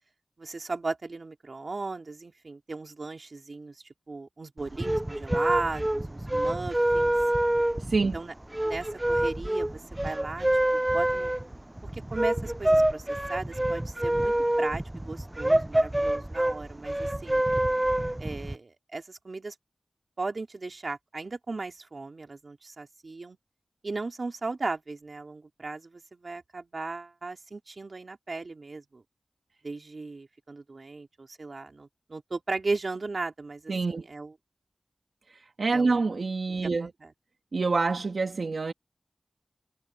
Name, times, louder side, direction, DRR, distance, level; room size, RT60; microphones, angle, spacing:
voice 1, 0.4-7.1 8.1-8.3 8.6-11.3 11.8-17.4 18.2-19.5 20.2-23.4 23.8-29.0 29.6-34.4 35.7-36.1 36.6-37.1, right 3 dB, 65° right, 3.0 m, -36 dB
sound 1, 4.6-18.6, right 1 dB, 15° right, 0.5 m, -27 dB
voice 2, 33.7-34.0 35.6-36.9 37.5-38.7, right 3 dB, 85° right, 1.6 m, -26 dB
wide cardioid pair, 70°, 0 cm